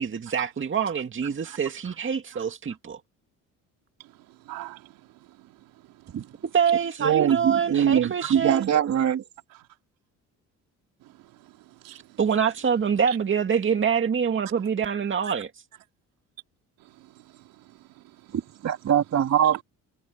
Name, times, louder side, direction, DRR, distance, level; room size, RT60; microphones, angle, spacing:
voice 1, 0.0-3.0 6.4-8.6 12.2-15.5, right 7 dB, 35° right, 2.2 m, -25 dB
voice 2, 4.0-5.5 5.9-6.4 8.2-8.3 11.0-12.2 13.1-13.2 15.2-15.3 16.8-18.4, right 15 dB, 80° right, 3.5 m, -45 dB
voice 3, 7.0-9.2 18.3-19.6, right 9 dB, 50° right, 2.7 m, -22 dB
supercardioid pair, 80°, 33 cm